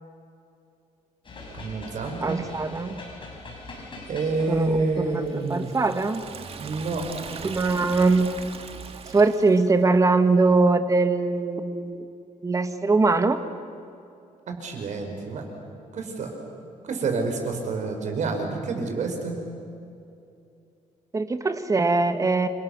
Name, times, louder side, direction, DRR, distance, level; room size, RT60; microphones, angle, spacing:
sound 1, 1.2-7.6, left 2 dB, 35° left, 7.0 m, -43 dB
voice 1, 1.6-2.4 4.1-5.7 6.6-7.1 14.5-15.4 15.9-16.4 16.8-19.4, right 3 dB, 60° right, 4 dB, 5.5 m, -28 dB
voice 2, 2.2-3.0 4.5-6.2 7.4-8.4 9.1-12.0 12.4-13.4 21.1-22.5, right 3 dB, 25° right, 9 dB, 1.6 m, -22 dB
Liquid, 5.2-9.8, right 5 dB, 45° right, 1.9 m, -40 dB
30.0 x 25.5 x 6.9 m, 2.6 s
cardioid pair, 130°, 14 cm